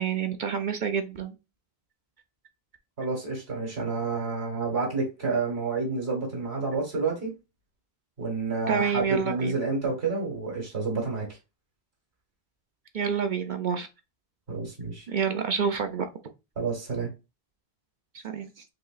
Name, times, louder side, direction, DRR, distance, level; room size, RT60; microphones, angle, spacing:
voice 1, 0.0-1.4 8.7-9.5 12.9-13.9 15.1-16.1 18.2-18.6, right 6 dB, 55° right, 0.7 m, -28 dB
voice 2, 3.0-7.3 8.2-11.3 14.5-15.1 16.6-17.1, right 4 dB, 80° right, 2.3 m, -29 dB
4.9 x 3.0 x 2.3 m
omnidirectional pair, 1.0 m